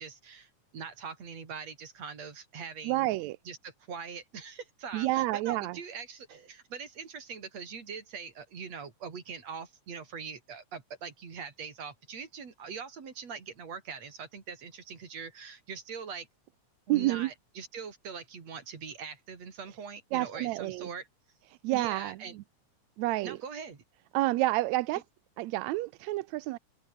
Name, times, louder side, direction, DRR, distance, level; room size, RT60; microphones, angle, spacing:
voice 1, 0.0-3.1 3.4-16.3 16.9-21.1 21.7-22.4 23.2-23.8 24.9-25.0, right 6 dB, 60° right, 4.6 m, -42 dB
voice 2, 2.8-3.4 4.9-5.8 16.9-17.3 20.1-20.9 21.6-22.4 23.0-23.4 24.1-25.0 25.4-26.6, right 18 dB, 80° right, 1.9 m, -29 dB
omnidirectional pair, 3.3 m